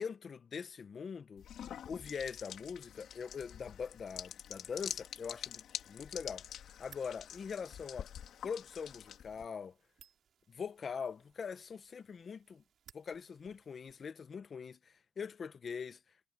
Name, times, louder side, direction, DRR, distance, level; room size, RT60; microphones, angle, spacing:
voice 1, 0.0-1.4 1.9-6.4 6.8-8.1 8.4-9.7 10.5-12.6 12.9-16.0, left 6 dB, 45° left, 1.4 m, -42 dB
sound 1, 1.4-9.5, left 9 dB, 70° left, 3.7 m, -46 dB
sound 2, 6.5-14.0, right 8 dB, 65° right, 6.1 m, -65 dB
cardioid pair, 90°, 0 cm